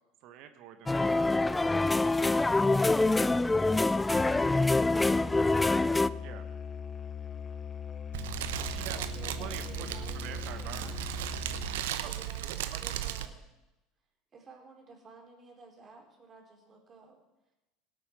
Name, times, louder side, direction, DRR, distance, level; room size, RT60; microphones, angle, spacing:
voice 1, 0.2-2.0 4.1-4.4 6.2-6.5 8.7-9.0 9.4-10.9 12.0-12.1 12.4-12.8, right 10 dB, 60° right, 9 dB, 1.4 m, -46 dB
sound 1, 0.9-6.1, left 2 dB, 10° left, 0.4 m, -25 dB
Musical instrument, 4.1-11.9, left 6 dB, 35° left, 0.8 m, -40 dB
Fire, 8.1-13.3, right 12 dB, 75° right, 0.8 m, -36 dB
voice 2, 8.5-11.2 12.0-13.4 14.3-17.2, right 3 dB, 35° right, 1 dB, 4.3 m, -53 dB
18.0 x 8.5 x 6.1 m, 0.98 s
hypercardioid pair, 80°, 0 cm